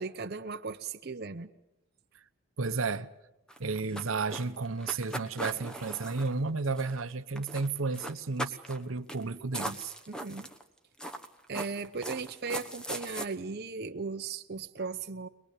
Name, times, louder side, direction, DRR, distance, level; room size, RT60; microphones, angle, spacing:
voice 1, 0.0-1.5 10.1-10.5 11.5-15.3, right 4 dB, 50° right, 0.8 m, -37 dB
voice 2, 2.6-3.1 3.6-9.9, right 4 dB, 75° right, 0.9 m, -32 dB
sound 1, 3.5-7.1 7.4-7.7 7.9-8.8 9.1-9.2 9.5-10.6 11.0-13.3, right 1 dB, 5° left, 1.2 m, -39 dB
22.5 x 21.5 x 8.3 m
head